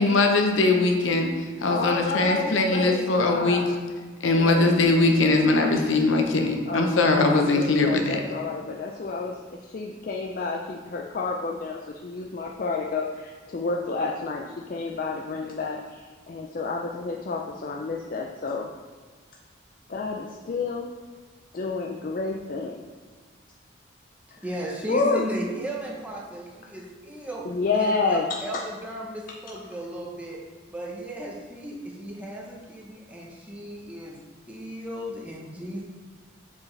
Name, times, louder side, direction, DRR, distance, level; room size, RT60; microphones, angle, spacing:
voice 1, 0.0-3.6 4.2-8.2, left 2 dB, 80° left, 3 dB, 0.7 m, -21 dB
voice 2, 1.7-3.8 4.3-5.1 6.7-18.7 19.9-20.9 21.5-22.9 24.9-25.3 27.4-28.6, left 4 dB, 45° left, 0 dB, 0.4 m, -30 dB
voice 3, 2.3-3.0 24.4-27.5 27.7-30.4 30.7-35.8, right 1 dB, 5° right, -3 dB, 0.8 m, -36 dB
7.0 x 4.7 x 3.2 m, 1.5 s
head